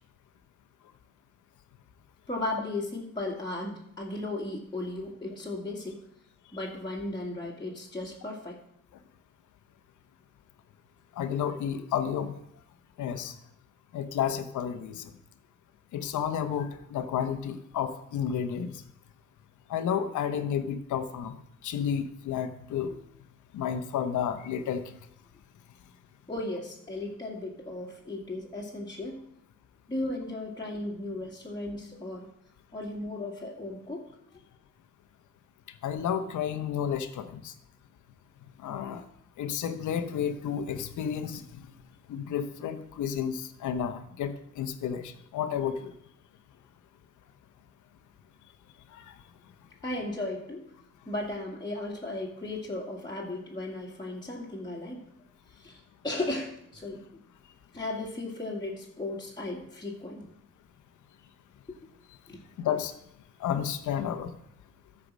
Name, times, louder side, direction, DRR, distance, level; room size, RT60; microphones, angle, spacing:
voice 1, 2.3-6.0 6.5-8.6 26.3-29.2 29.9-32.3 32.7-34.1 34.3-34.4 49.8-50.7 51.1-55.0 55.5-57.2 57.7-60.3 61.7-61.8 62.3-62.4, left 2 dB, 15° left, -4 dB, 2.1 m, -36 dB
voice 2, 11.2-12.3 13.0-13.3 13.9-15.0 15.9-18.8 19.7-21.3 21.6-22.9 23.5-24.9 35.8-37.5 38.6-39.0 39.4-41.6 42.1-45.9 48.9-49.0 62.6-62.9 63.4-64.3, left 8 dB, 75° left, 9 dB, 1.1 m, -31 dB
13.5 x 4.9 x 6.2 m, 0.74 s
cardioid pair, 90°, 30 cm